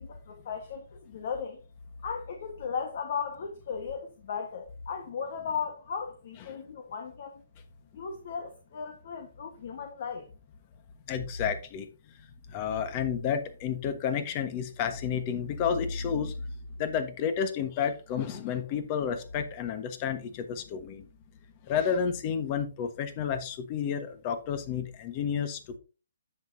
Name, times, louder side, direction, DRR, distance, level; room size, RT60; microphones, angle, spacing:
voice 1, 0.0-1.6 2.0-7.4 7.9-10.3, left 6 dB, 50° left, 1.4 m, -36 dB
voice 2, 11.1-11.9 12.5-16.5 16.8-21.1 21.6-25.8, left 7 dB, 30° left, 1.3 m, -31 dB
10.5 x 7.7 x 2.7 m
hypercardioid pair, 155°, 0 cm